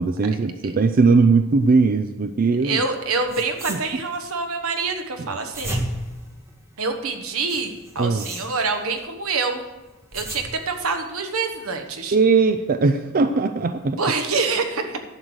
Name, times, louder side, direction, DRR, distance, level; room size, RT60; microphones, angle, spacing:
voice 1, 0.0-2.8 3.7-3.8 8.0-8.3 12.1-14.0, right 4 dB, 40° right, 9 dB, 0.4 m, -19 dB
voice 2, 2.6-5.8 6.8-9.6 10.1-12.1 14.0-15.0, right 4 dB, 70° right, 5 dB, 1.3 m, -26 dB
sound 1, 3.0-3.1 3.3-4.3 5.3-6.9 7.5-9.0 9.8-10.9, equal, 15° right, 1.7 m, -34 dB
11.0 x 6.6 x 6.3 m, 1.1 s
head